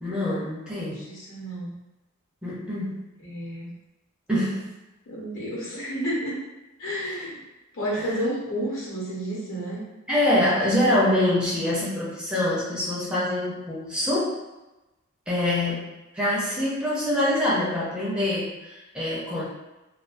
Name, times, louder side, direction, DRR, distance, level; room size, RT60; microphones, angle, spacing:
voice 1, 0.0-1.1 2.4-3.1 4.3-4.7 7.9-8.2 10.1-14.4 15.3-19.4, left 1 dB, 5° right, -7 dB, 0.5 m, -25 dB
voice 2, 0.9-1.7 3.2-3.7 5.1-6.3 6.8-7.4 7.7-9.8, equal, 60° left, -6 dB, 0.9 m, -31 dB
2.3 x 2.2 x 2.5 m, 1.0 s
head